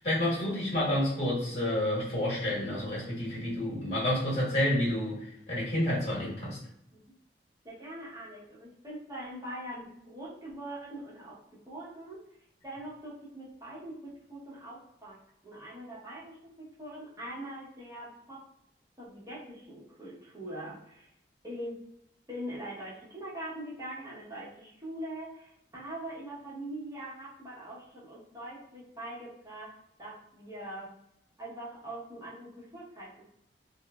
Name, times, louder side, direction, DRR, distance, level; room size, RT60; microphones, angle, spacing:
voice 1, 0.0-6.6, left 1 dB, 40° left, -6 dB, 1.1 m, -29 dB
voice 2, 7.6-12.2 12.6-15.2 15.4-18.4 19.0-21.1 21.4-21.8 22.3-29.7 30.0-30.9 31.4-33.3, right 1 dB, 20° right, -8 dB, 0.9 m, -42 dB
3.1 x 2.1 x 2.2 m, 0.76 s
head